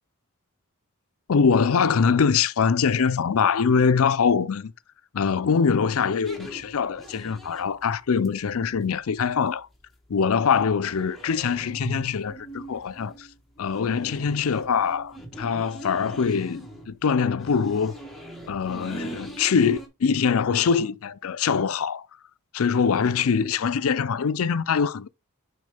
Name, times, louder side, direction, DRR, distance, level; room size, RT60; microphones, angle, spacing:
voice 1, 1.3-4.7 5.1-9.7 10.1-13.3 13.6-17.9 18.5-22.1 22.5-25.1, left 6 dB, 70° left, 0.5 m, -23 dB
sound 1, 6.2-19.9, right 1 dB, ahead, 1.4 m, -41 dB
6.4 x 4.7 x 3.4 m
head